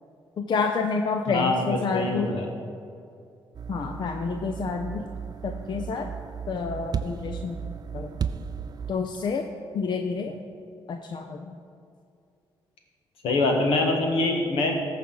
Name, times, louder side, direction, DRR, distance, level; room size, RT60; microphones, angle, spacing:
voice 1, 0.4-2.4 3.7-5.1 5.4-6.1 6.5-7.6 7.9-8.2 8.9-9.5 9.7-10.3 10.9-11.5, left 5 dB, 50° left, 5 dB, 0.6 m, -29 dB
voice 2, 1.9-2.5 13.2-14.8, left 2 dB, 80° left, 2 dB, 1.4 m, -24 dB
sound 1, 3.5-8.9, right 7 dB, 45° right, 0.4 m, -35 dB
14.0 x 4.8 x 4.0 m, 2.4 s
supercardioid pair, 60°, 10 cm